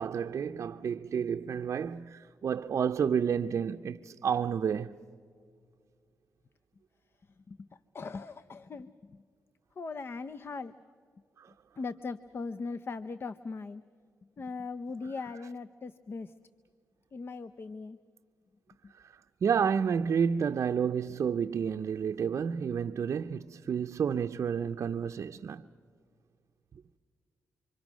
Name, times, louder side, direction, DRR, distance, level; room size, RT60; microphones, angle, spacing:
voice 1, 0.0-4.9 11.4-11.5 18.9-25.7, right 7 dB, 60° right, 0.6 m, -30 dB
voice 2, 7.5-9.2 9.8-10.7 11.8-13.8 14.4-16.3 17.1-18.0 18.8-18.9, left 4 dB, 45° left, 0.7 m, -39 dB
28.0 x 24.5 x 6.2 m
cardioid pair, 90°, 6 cm